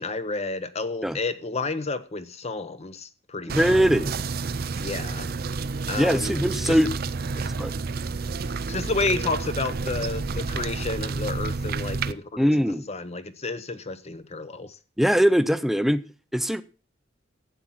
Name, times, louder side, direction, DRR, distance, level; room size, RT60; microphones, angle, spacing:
voice 1, 0.0-3.9 4.8-5.3 5.9-6.4 6.6-6.8 7.3-7.5 8.7-12.5 12.9-14.7, left 3 dB, 35° left, 1.0 m, -31 dB
voice 2, 3.5-4.2 6.0-6.9 7.6-7.7 12.4-12.8 15.0-16.0 16.3-16.6, equal, ahead, 0.6 m, -21 dB
sound 1, 3.5-12.1, right 4 dB, 50° right, 0.6 m, -30 dB
11.5 x 8.8 x 5.8 m
head